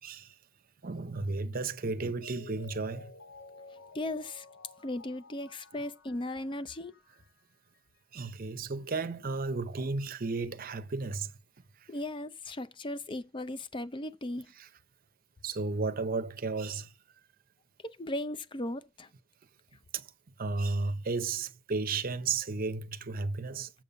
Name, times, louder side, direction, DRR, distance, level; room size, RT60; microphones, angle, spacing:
voice 1, 0.0-0.4 0.8-3.1 5.7-5.8 8.1-11.3 11.8-11.9 14.6-14.7 15.4-16.9 19.9-20.1 20.4-23.7, right 3 dB, 45° right, 0.7 m, -33 dB
Mallet percussion, 1.9-7.4 7.7-7.8, left 3 dB, 65° left, 0.9 m, -53 dB
voice 2, 3.9-4.4 4.8-6.9 11.9-14.5 17.8-19.1, left 1 dB, 25° left, 0.5 m, -37 dB
7.6 x 5.5 x 5.4 m
head